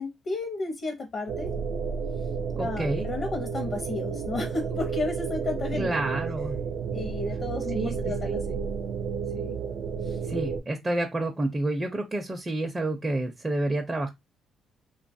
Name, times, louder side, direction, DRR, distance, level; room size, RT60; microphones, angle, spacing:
voice 1, 0.0-1.5 2.6-6.0 6.9-8.6 9.3-9.5 10.0-10.2, left 2 dB, 55° left, 0.7 m, -33 dB
sound 1, 1.3-10.6, right 6 dB, 80° right, 0.5 m, -31 dB
voice 2, 2.6-3.1 5.8-6.6 7.7-7.9 8.3-8.4 10.3-14.1, right 2 dB, 20° right, 0.5 m, -29 dB
2.6 x 2.3 x 2.6 m
cardioid pair, 90°, 0 cm